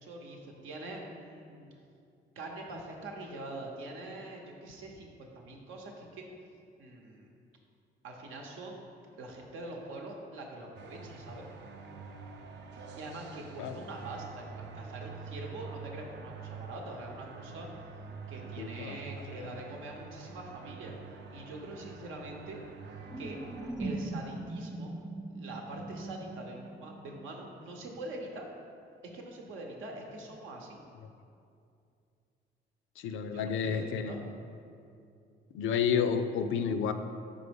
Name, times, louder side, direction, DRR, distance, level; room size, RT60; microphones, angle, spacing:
voice 1, 0.0-1.7 2.4-6.3 6.8-7.3 8.0-8.8 9.2-11.4 13.0-17.7 18.3-20.9 21.3-22.6 23.2-23.4 23.8-24.9 25.3-28.5 29.0-30.8 33.3-34.2, right 2 dB, 90° right, 0 dB, 0.9 m, -44 dB
sound 1, 10.8-23.7, right 5 dB, 65° right, 0.5 m, -46 dB
voice 2, 18.6-19.0 33.0-34.3 35.5-36.9, left 7 dB, 80° left, 9 dB, 0.4 m, -30 dB
sound 2, 23.1-27.7, right 2 dB, 5° right, 0.3 m, -40 dB
5.3 x 3.9 x 5.2 m, 2.5 s
cardioid pair, 90°, 20 cm